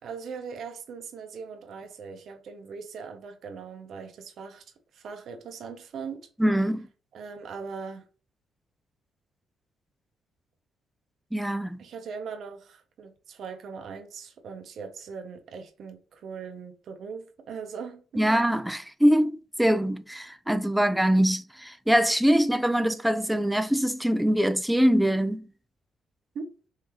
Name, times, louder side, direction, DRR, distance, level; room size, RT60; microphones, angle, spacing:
voice 1, 0.0-4.6 4.9-6.3 7.1-8.0 11.8-18.3 26.3-26.5, right 5 dB, 65° right, 0.7 m, -40 dB
voice 2, 6.4-6.9 11.3-11.8 18.2-25.4, equal, 5° right, 0.4 m, -23 dB
3.6 x 2.7 x 3.0 m
cardioid pair, 90°, 0 cm